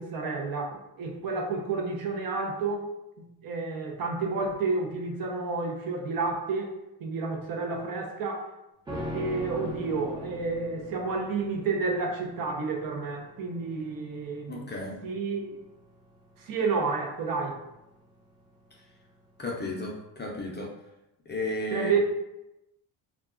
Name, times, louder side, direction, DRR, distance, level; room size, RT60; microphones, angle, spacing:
voice 1, 0.0-2.9 3.2-6.7 7.0-8.5 9.1-14.7 15.0-15.5 16.4-17.6 21.7-22.0, right 4 dB, 50° right, 1 dB, 0.7 m, -30 dB
sound 1, 8.9-18.3 18.6-18.7, equal, 10° right, 0.8 m, -41 dB
voice 2, 14.5-15.0 19.4-20.7 21.3-22.0, left 1 dB, 25° left, -2 dB, 0.5 m, -33 dB
2.3 x 2.3 x 3.6 m, 0.90 s
cardioid pair, 110°, 43 cm